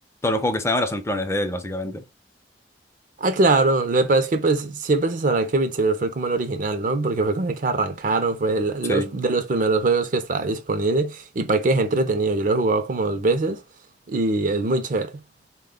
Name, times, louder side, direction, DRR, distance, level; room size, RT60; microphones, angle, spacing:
voice 1, 0.2-2.0 8.9-9.1, left 1 dB, 15° left, 0.4 m, -25 dB
voice 2, 3.2-13.6 14.1-15.1, right 3 dB, 50° right, 0.5 m, -22 dB
4.0 x 2.2 x 3.6 m
head